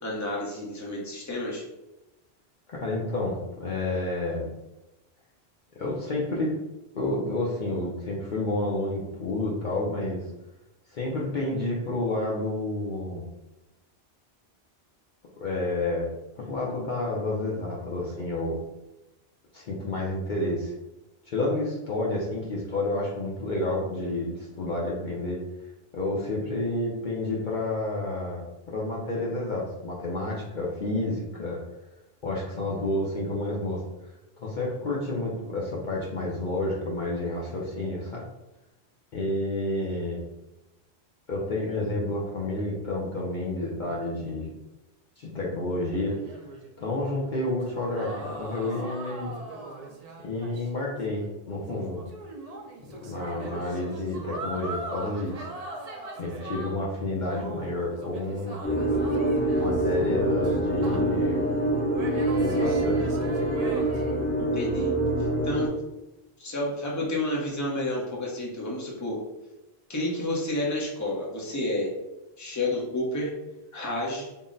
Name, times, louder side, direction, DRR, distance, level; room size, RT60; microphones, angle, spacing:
voice 1, 0.0-1.6 64.4-64.9 65.4-65.7 66.4-69.2 69.9-71.9 72.4-73.3 73.7-74.3, left 1 dB, 20° left, -3 dB, 0.7 m, -30 dB
voice 2, 2.7-4.5 5.8-6.5 6.9-10.3 10.9-13.2 15.4-16.1 16.4-18.6 19.5-20.7 21.3-25.4 25.9-31.6 32.2-33.8 34.4-38.2 39.1-40.2 41.3-44.5 45.2-46.2 46.8-49.3 50.2-52.0 52.9-55.5 56.1-58.6 59.6-61.5 62.3-63.1, left 2 dB, 55° left, -4 dB, 0.7 m, -30 dB
sound 1, 46.1-50.8 51.1-51.2 51.7-56.9 57.2-61.4 61.9-64.3, right 2 dB, 45° right, 0.5 m, -40 dB
sound 2, 58.6-65.7, right 1 dB, 75° left, 1.2 m, -25 dB
3.7 x 2.1 x 3.8 m, 0.98 s
omnidirectional pair, 1.1 m